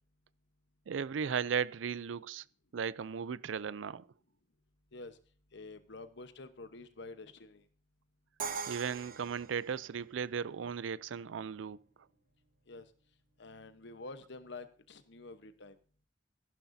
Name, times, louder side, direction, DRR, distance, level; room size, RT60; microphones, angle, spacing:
voice 1, 0.9-2.4 2.7-4.1 8.7-11.8, right 7 dB, 85° right, 0.4 m, -36 dB
voice 2, 5.5-7.7 12.7-12.9 13.4-15.8, left 3 dB, 65° left, 1.1 m, -48 dB
Crash cymbal, 8.4-10.3, right 5 dB, 50° right, 0.7 m, -41 dB
14.0 x 11.5 x 2.7 m
head